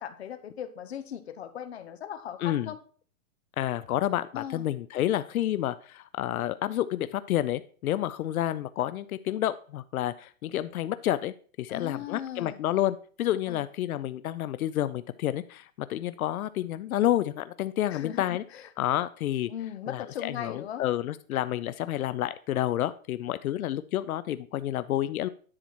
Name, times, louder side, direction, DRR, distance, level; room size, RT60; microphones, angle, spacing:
voice 1, 0.0-2.8 4.3-4.6 11.7-12.6 13.5-13.7 17.9-18.7 19.5-20.9, left 9 dB, 50° left, 9 dB, 0.9 m, -38 dB
voice 2, 2.4-2.7 3.6-18.4 18.8-19.5 19.9-25.3, left 13 dB, 90° left, 14 dB, 0.6 m, -29 dB
9.9 x 4.4 x 4.4 m, 0.43 s
hypercardioid pair, 180°, 41 cm